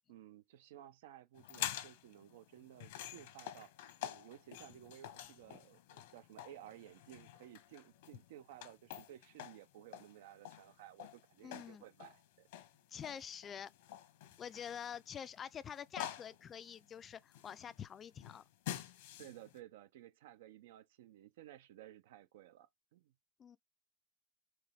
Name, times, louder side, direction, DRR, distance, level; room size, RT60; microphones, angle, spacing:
voice 1, 0.1-3.7 4.0-12.5 19.2-23.1, right 12 dB, 85° right, 0.6 m, -56 dB
sound 1, 1.4-19.6, left 12 dB, 80° left, 1.1 m, -48 dB
voice 2, 11.4-11.8 12.9-13.7 14.4-18.4 23.4-23.6, left 8 dB, 25° left, 0.3 m, -47 dB
4.7 x 3.1 x 3.4 m
supercardioid pair, 155°, 0 cm